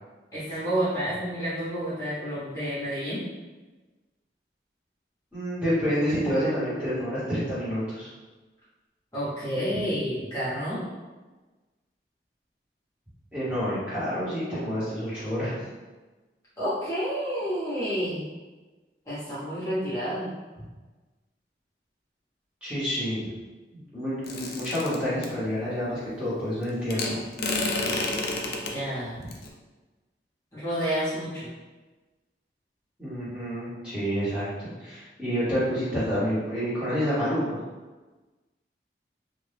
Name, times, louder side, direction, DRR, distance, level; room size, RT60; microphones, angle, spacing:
voice 1, 0.3-3.2 9.1-10.8 16.6-18.2 19.1-20.3 28.7-29.2 30.5-31.5, equal, 20° left, -12 dB, 1.0 m, -29 dB
voice 2, 5.3-8.1 13.3-15.7 22.6-23.3 23.7-27.2 33.0-37.6, equal, 5° right, -12 dB, 1.2 m, -28 dB
sound 1, 24.3-25.3 26.9-28.7 29.3-29.5, left 2 dB, 60° left, 0.4 m, -29 dB
2.7 x 2.5 x 3.3 m, 1.2 s
head